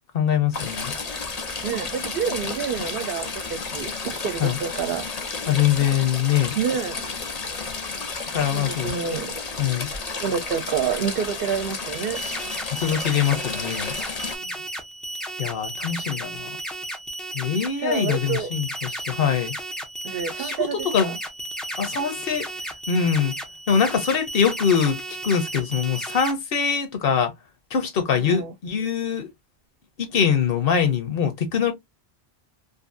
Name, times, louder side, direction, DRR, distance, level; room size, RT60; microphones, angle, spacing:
voice 1, 0.1-0.9 4.4-4.6 5.4-6.5 8.3-8.9 9.6-9.9 12.7-13.9 15.4-16.5 17.3-19.6 20.4-21.2 21.8-22.5 22.9-23.3 23.7-27.3 27.7-29.3 30.0-31.7, left 7 dB, 65° left, 1.0 m, -23 dB
Stream / Trickle dribble, 0.5-14.4, left 4 dB, 45° left, 0.7 m, -32 dB
voice 2, 1.6-5.1 6.6-7.1 8.5-9.3 10.2-12.2 14.4-14.5 17.8-18.5 20.0-21.2 28.2-28.5, right 7 dB, 70° right, 0.7 m, -28 dB
sound 1, 11.9-26.3, right 1 dB, ahead, 0.3 m, -34 dB
2.7 x 2.5 x 2.5 m
omnidirectional pair, 1.0 m